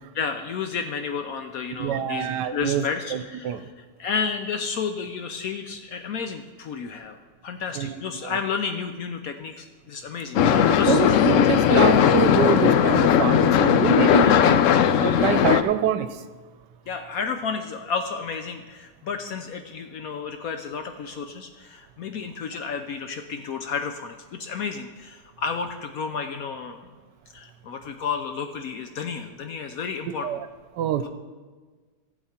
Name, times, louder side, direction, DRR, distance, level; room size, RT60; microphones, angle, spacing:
voice 1, 0.1-7.2 7.4-11.0 11.6-11.8 16.9-26.9 27.3-30.4 31.0-31.1, left 6 dB, 65° left, 7 dB, 1.0 m, -32 dB
voice 2, 1.8-2.8 3.1-3.6 7.8-7.9 8.2-8.3 10.4-14.6 15.0-16.1 30.2-30.4 30.8-31.0, right 9 dB, 80° right, 11 dB, 1.2 m, -25 dB
sound 1, 10.3-15.6, left 9 dB, 85° left, 0.6 m, -18 dB
15.0 x 7.3 x 4.3 m, 1.4 s
omnidirectional pair, 1.9 m